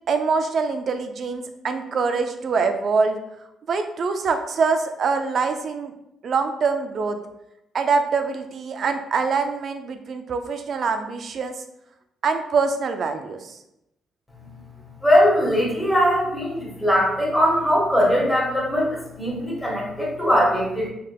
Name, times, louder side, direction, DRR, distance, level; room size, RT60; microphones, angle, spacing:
voice 1, 0.1-3.2 3.7-5.9 6.2-7.2 7.7-11.6 12.2-13.6, right 4 dB, 55° right, 7 dB, 0.4 m, -24 dB
voice 2, 15.0-20.9, equal, 5° left, -4 dB, 1.3 m, -20 dB
3.3 x 3.2 x 2.3 m, 0.84 s
cardioid pair, 90°, 0 cm